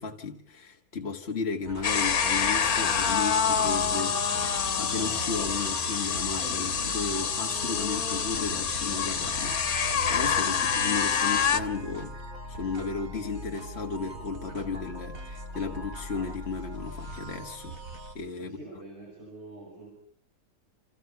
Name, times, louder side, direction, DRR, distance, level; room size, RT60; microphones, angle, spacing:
voice 1, 0.0-12.1 12.5-17.8 18.2-18.6, left 4 dB, 45° left, 1.9 m, -34 dB
sound 1, 1.7-18.2, right 1 dB, 70° right, 3.7 m, -41 dB
sound 2, 1.8-11.6, left 7 dB, 85° left, 1.8 m, -27 dB
voice 2, 18.4-19.9, right 2 dB, 50° right, 6.2 m, -45 dB
29.0 x 27.5 x 5.8 m
omnidirectional pair, 1.5 m